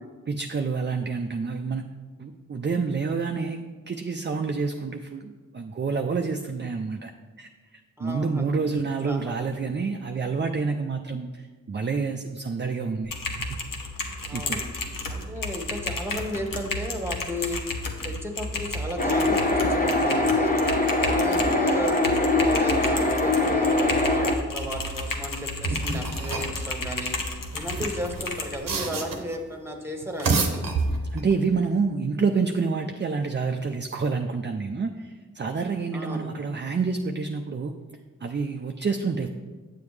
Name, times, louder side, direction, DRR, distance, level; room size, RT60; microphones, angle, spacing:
voice 1, 0.3-1.9 2.2-7.1 7.4-13.6 14.3-14.6 31.1-37.7 38.2-39.3, right 4 dB, 35° right, 5 dB, 0.5 m, -28 dB
voice 2, 8.0-8.6 9.0-9.7 14.3-14.7 15.1-17.6 18.0-20.6 21.0-22.0 22.4-27.2 27.5-30.5 35.9-36.4, equal, 5° right, 3 dB, 1.3 m, -34 dB
Typing, 13.0-28.6, left 2 dB, 75° left, 0.9 m, -32 dB
sound 1, 19.0-24.4, left 2 dB, 25° left, 0.9 m, -22 dB
sound 2, 25.6-26.6 27.5-29.4 30.0-31.3, right 4 dB, 80° right, 0.9 m, -28 dB
8.4 x 6.9 x 3.2 m, 1.4 s
cardioid pair, 40°, 33 cm